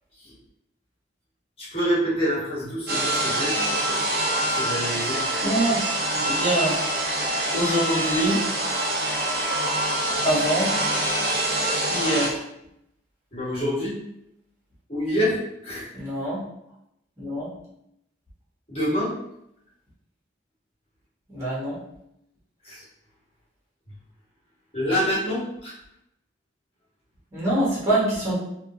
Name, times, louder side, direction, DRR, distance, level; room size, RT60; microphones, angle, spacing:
voice 1, 1.6-3.5 4.5-5.2 13.3-14.0 14.9-15.9 18.7-19.1 22.6-22.8 24.7-25.8, equal, 30° left, -7 dB, 1.4 m, -26 dB
sound 1, 2.9-12.3, right 1 dB, 55° right, 0.8 m, -25 dB
voice 2, 5.4-5.8 6.1-6.8 7.5-8.4 10.2-10.7 11.9-12.4 15.9-16.4 17.2-17.5 21.3-21.8 27.3-28.4, right 1 dB, 15° right, -9 dB, 1.3 m, -24 dB
3.4 x 2.3 x 2.7 m, 0.79 s
head